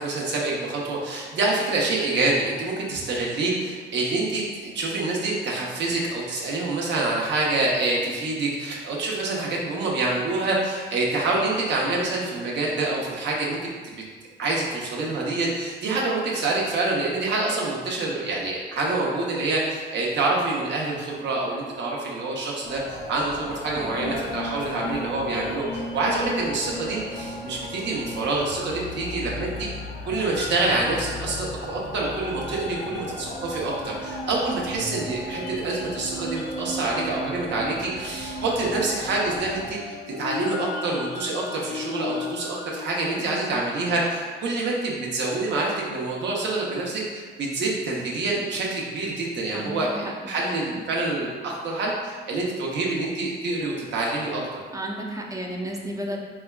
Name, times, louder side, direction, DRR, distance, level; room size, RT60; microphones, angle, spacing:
voice 1, 0.0-13.6 13.8-13.9 14.4-29.7 30.1-54.4, right 2 dB, 65° right, -3 dB, 0.8 m, -26 dB
sound 1, 22.6-39.7, left 2 dB, 40° left, 0.6 m, -39 dB
voice 2, 23.7-24.3 43.2-43.6 49.5-50.1 50.4-50.8 54.7-56.2, right 1 dB, 15° right, 0 dB, 0.4 m, -34 dB
sound 2, 24.0-43.6, left 2 dB, 90° left, 0.5 m, -36 dB
4.1 x 2.3 x 2.3 m, 1.5 s
cardioid pair, 90°, 20 cm